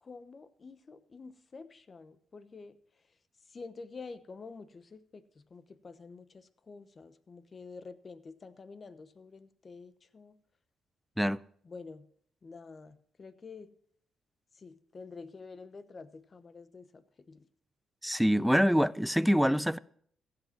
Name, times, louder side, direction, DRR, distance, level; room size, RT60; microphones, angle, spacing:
voice 1, 0.0-2.8 3.5-10.4 11.6-12.1 12.4-13.7 14.5-17.5, left 4 dB, 35° left, 1.0 m, -48 dB
voice 2, 18.0-19.8, equal, ahead, 0.4 m, -25 dB
15.0 x 7.8 x 5.9 m
cardioid pair, 90°, 0 cm